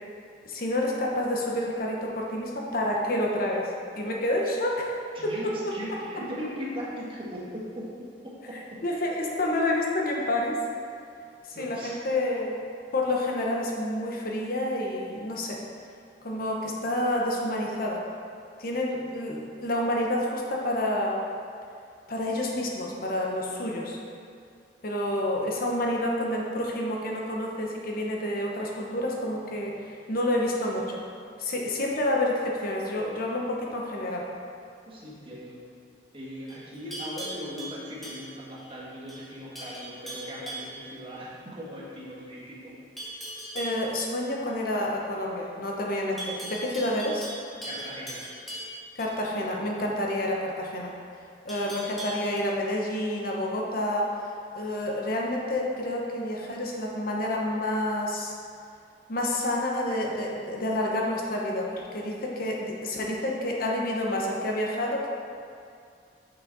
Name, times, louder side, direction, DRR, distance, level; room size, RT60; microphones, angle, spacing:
voice 1, 0.4-3.7 3.9-4.9 5.2-5.5 8.8-10.6 11.6-12.6 12.9-15.6 16.2-18.0 18.6-21.2 22.1-24.0 24.8-31.0 31.4-34.3 43.5-47.3 49.0-50.9 51.4-54.1 54.5-58.3 59.1-65.1, left 1 dB, 55° left, -1 dB, 0.9 m, -29 dB
voice 2, 5.1-9.1 11.5-12.0 34.8-35.6 36.1-43.1 47.6-48.3, equal, 30° right, -6 dB, 1.5 m, -39 dB
Livestock farm animals working animals, 36.5-38.7 39.1-39.3 39.5-40.8 43.0-43.8 46.2-49.1 51.5-52.4, right 1 dB, ahead, 1.5 m, -39 dB
6.4 x 6.1 x 4.0 m, 2.4 s
head